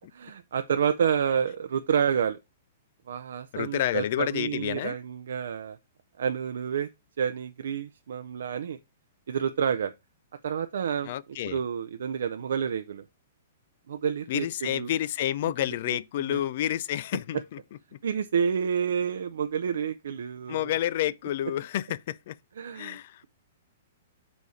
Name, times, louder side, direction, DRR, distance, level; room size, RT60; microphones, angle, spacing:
voice 1, 0.2-2.4 3.1-5.8 6.2-6.9 7.2-8.8 9.3-9.9 10.4-11.1 11.5-13.0 13.9-14.9 15.9-16.0 16.3-16.4 18.0-20.8 22.6-23.0, right 7 dB, 70° right, 0.4 m, -29 dB
voice 2, 3.5-4.9 11.0-11.6 14.3-17.6 20.5-22.4 22.7-23.2, left 12 dB, 40° left, 0.3 m, -29 dB
6.9 x 4.0 x 4.8 m
hypercardioid pair, 180°, 0 cm